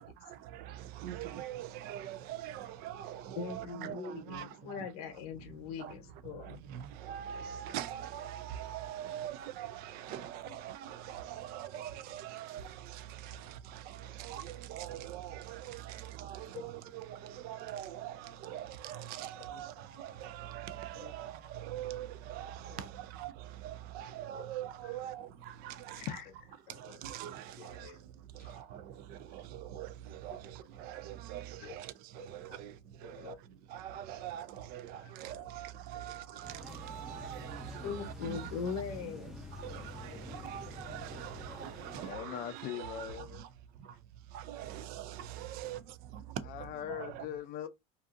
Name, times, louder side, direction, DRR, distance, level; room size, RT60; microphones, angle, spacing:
voice 1, 0.0-4.9 5.8-5.9 6.4-26.2 26.8-27.9 28.4-32.7 33.0-33.3 33.7-38.5 39.6-43.5 44.3-45.8 46.1-46.2 46.9-47.3, right 11 dB, 55° right, 0.4 m, -43 dB
voice 2, 3.3-6.6 9.1-9.2 10.5-10.6 19.5-19.6 21.0-21.1 22.7-22.8 24.3-24.4 26.9-27.0 27.6-28.0 31.6-31.7 32.2-32.6 33.0-33.4 35.0-35.1 35.9-36.0 37.8-39.3 40.1-40.2, left 6 dB, 80° left, 0.8 m, -42 dB
voice 3, 26.0-26.3 28.4-28.5 42.0-43.4 46.5-47.7, left 11 dB, 50° left, 0.4 m, -41 dB
sound 1, 36.4-42.1, left 1 dB, ahead, 0.6 m, -47 dB
2.6 x 2.4 x 2.4 m
supercardioid pair, 125°, 19 cm